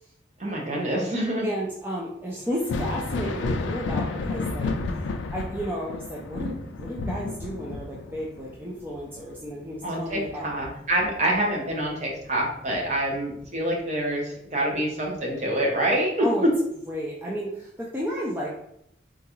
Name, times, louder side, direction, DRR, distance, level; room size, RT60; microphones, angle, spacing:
voice 1, 0.4-1.5 9.8-16.5, right 1 dB, 40° right, -2 dB, 0.7 m, -26 dB
voice 2, 1.4-4.7 5.3-10.5 16.2-16.5 16.9-18.6, equal, 10° right, -4 dB, 0.3 m, -32 dB
Thunder, 2.5-11.9 12.2-13.5 15.0-15.1 15.9-16.1, left 3 dB, 85° left, 0.3 m, -32 dB
3.7 x 2.3 x 2.9 m, 0.76 s
head